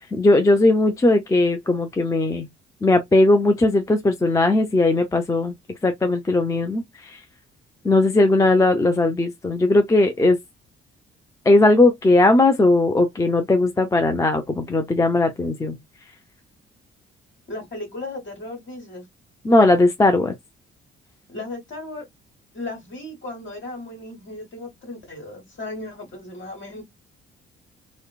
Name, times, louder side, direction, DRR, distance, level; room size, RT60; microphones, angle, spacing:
voice 1, 0.1-2.5 2.8-5.5 5.8-6.8 7.8-10.4 11.5-15.8 19.4-20.3, left 2 dB, 10° left, 0.4 m, -18 dB
voice 2, 17.5-19.0 21.3-22.0 22.5-26.8, left 2 dB, 40° left, 1.5 m, -35 dB
2.9 x 2.0 x 2.2 m
figure-of-eight pair, 45°, 29 cm